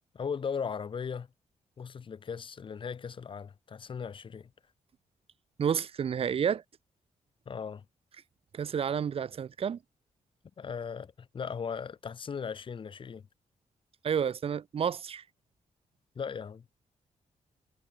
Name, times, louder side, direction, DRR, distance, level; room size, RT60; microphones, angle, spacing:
voice 1, 0.1-1.3 1.8-4.5 7.4-7.8 10.6-13.3 16.1-16.6, left 6 dB, 40° left, 3.5 m, -37 dB
voice 2, 5.6-6.6 8.5-9.8 14.0-15.2, right 7 dB, 50° right, 1.4 m, -30 dB
wide cardioid pair, 160°, 13 cm